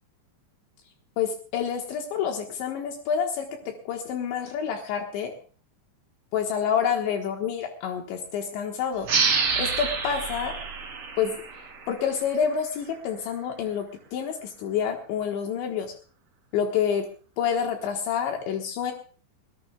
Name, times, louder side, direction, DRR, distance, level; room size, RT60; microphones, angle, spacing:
voice 1, 1.2-3.5 3.9-5.3 6.3-9.1 9.6-10.5 11.2-11.4 11.9-13.9 14.1-15.9 16.5-17.1 17.4-18.9, left 7 dB, 75° left, 2 dB, 3.6 m, -28 dB
sound 1, 9.0-12.3, right 5 dB, 40° right, 3.2 m, -27 dB
22.5 x 18.5 x 2.3 m, 0.40 s
omnidirectional pair, 5.3 m